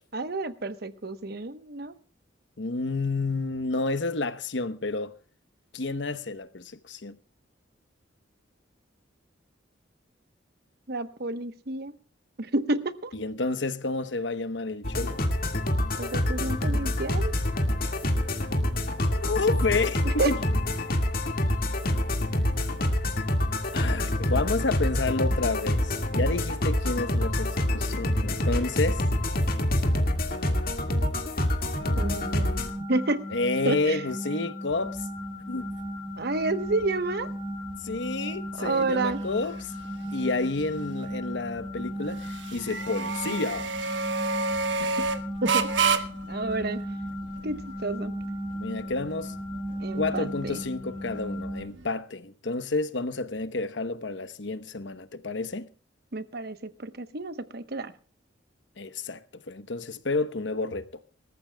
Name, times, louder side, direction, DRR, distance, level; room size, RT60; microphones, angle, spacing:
voice 1, 0.1-1.9 10.9-11.9 12.4-13.1 16.0-17.4 20.0-20.3 32.0-33.2 33.6-34.0 36.2-37.3 38.6-39.2 44.8-45.0 45.4-46.8 47.4-48.1 49.8-50.6 56.1-57.9, right 2 dB, 60° right, 1.0 m, -30 dB
voice 2, 2.6-5.1 5.7-7.2 13.1-15.2 19.2-20.4 23.7-29.0 33.3-35.1 35.5-35.7 37.8-39.7 40.1-43.9 48.6-49.3 49.9-55.7 58.8-60.9, left 3 dB, 70° left, 1.0 m, -30 dB
sound 1, 14.8-32.7, left 1 dB, 50° left, 2.0 m, -26 dB
sound 2, 31.8-51.6, equal, 10° left, 3.4 m, -36 dB
sound 3, 34.7-51.9, right 4 dB, 75° right, 1.2 m, -33 dB
26.0 x 14.0 x 2.3 m
head